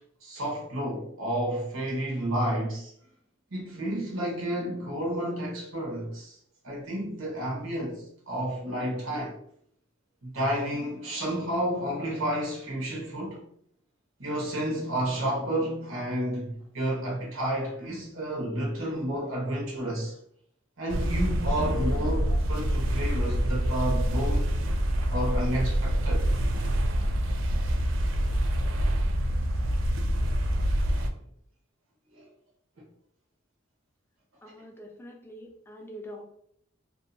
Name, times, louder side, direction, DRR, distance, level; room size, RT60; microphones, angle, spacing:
voice 1, 0.2-2.9 3.5-6.4 6.6-9.3 10.2-13.4 14.2-20.1 20.8-24.5 25.1-26.3 32.1-32.2, right 1 dB, 90° right, 1.0 m, -31 dB
sound 1, 20.9-31.1, equal, 70° right, 0.3 m, -26 dB
voice 2, 34.4-36.2, equal, 10° left, 0.4 m, -44 dB
2.6 x 2.2 x 2.5 m
head